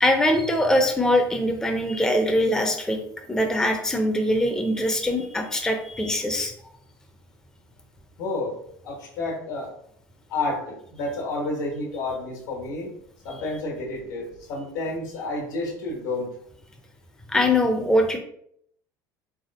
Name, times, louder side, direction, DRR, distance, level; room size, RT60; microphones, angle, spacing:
voice 1, 0.0-3.0 3.3-6.5 17.3-18.2, left 1 dB, 5° left, 4 dB, 0.5 m, -22 dB
voice 2, 8.2-8.5 8.8-9.7 10.3-12.9 13.2-16.3, left 2 dB, 70° left, -1 dB, 1.3 m, -30 dB
3.6 x 3.4 x 2.5 m, 0.69 s
figure-of-eight pair, 65°, 11 cm